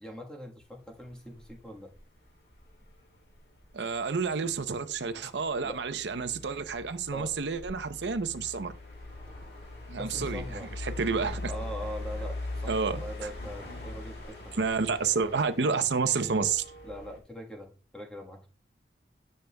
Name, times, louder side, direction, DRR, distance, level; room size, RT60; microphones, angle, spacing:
voice 1, 0.0-1.9 5.6-5.8 7.1-7.3 9.9-10.7 11.5-14.7 16.8-18.5, equal, 5° left, 1.3 m, -42 dB
sound 1, 0.6-17.2, left 2 dB, 60° left, 2.4 m, -42 dB
voice 2, 3.7-8.7 9.9-11.5 12.7-13.3 14.6-16.6, right 5 dB, 85° right, 0.7 m, -30 dB
10.5 x 6.7 x 2.2 m
head